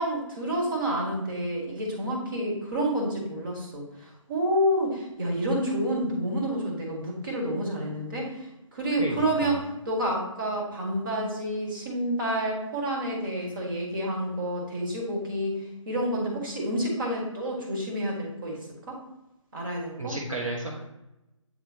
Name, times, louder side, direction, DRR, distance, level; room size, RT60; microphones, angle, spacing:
voice 1, 0.0-19.0 19.5-20.2, right 1 dB, 40° right, -2 dB, 1.7 m, -29 dB
voice 2, 9.0-9.5 20.0-20.9, right 1 dB, 90° right, -3 dB, 1.5 m, -33 dB
8.9 x 3.7 x 2.8 m, 0.93 s
figure-of-eight pair, 150°, 17 cm